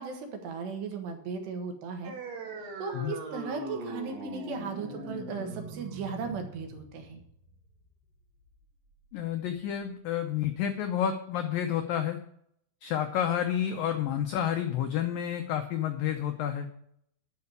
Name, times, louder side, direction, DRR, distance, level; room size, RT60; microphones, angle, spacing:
voice 1, 0.0-2.1 2.8-7.2, right 5 dB, 75° right, 4 dB, 3.5 m, -37 dB
sound 1, 2.0-9.1, right 2 dB, 60° right, 3.3 m, -41 dB
voice 2, 9.1-12.2 12.8-16.7, left 10 dB, 85° left, 6 dB, 2.0 m, -30 dB
11.0 x 5.9 x 7.1 m, 0.70 s
omnidirectional pair, 5.1 m